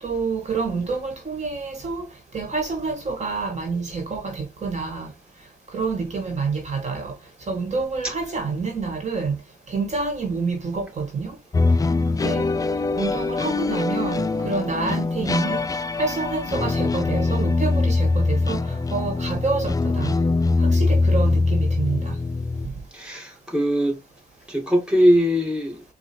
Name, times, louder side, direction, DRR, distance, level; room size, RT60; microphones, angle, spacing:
voice 1, 0.0-2.1 2.3-5.1 5.7-7.2 7.5-9.4 9.7-11.4 12.2-12.5 13.0-15.7 16.0-20.1 20.6-22.1, right 4 dB, 35° right, 1.5 m, -27 dB
sound 1, 11.5-22.7, left 3 dB, 20° left, 0.3 m, -22 dB
voice 2, 22.9-24.0 24.5-25.8, equal, 5° right, 2.0 m, -21 dB
4.8 x 2.3 x 4.3 m
cardioid pair, 90°, 20 cm